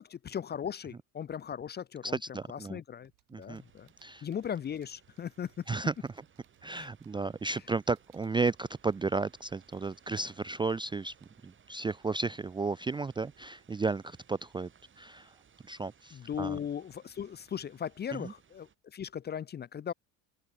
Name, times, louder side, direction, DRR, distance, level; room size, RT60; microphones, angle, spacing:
voice 1, 0.0-3.1 3.4-3.9 4.2-5.6 6.7-6.9 16.1-19.9, left 8 dB, 30° left, 0.6 m, -38 dB
voice 2, 2.0-2.8 3.3-3.6 4.0-4.3 5.7-5.9 6.6-11.1 11.4-14.7 15.0-15.3 15.7-16.6 18.1-18.3, right 3 dB, 15° right, 0.4 m, -33 dB
sound 1, 3.0-11.7, right 40 dB or more, 85° right, 7.9 m, -70 dB
sound 2, 3.5-18.7, right 7 dB, 35° right, 3.3 m, -63 dB
open air
supercardioid pair, 105°, 35 cm